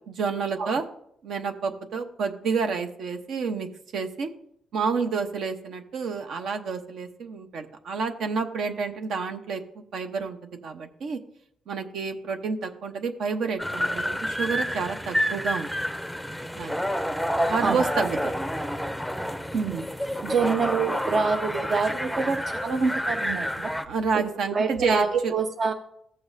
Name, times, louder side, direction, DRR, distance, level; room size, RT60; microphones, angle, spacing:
voice 1, 0.1-0.8 1.2-4.3 4.7-11.2 11.7-15.7 16.6-16.8 17.5-18.3 23.9-25.3, right 5 dB, 70° right, 6 dB, 0.9 m, -29 dB
sound 1, 13.6-23.8, equal, ahead, 0.5 m, -29 dB
voice 2, 19.5-19.9 20.2-23.7 24.1-24.2 24.5-25.7, right 5 dB, 50° right, 6 dB, 0.6 m, -26 dB
15.0 x 6.9 x 2.7 m, 0.71 s
cardioid pair, 90°, 0 cm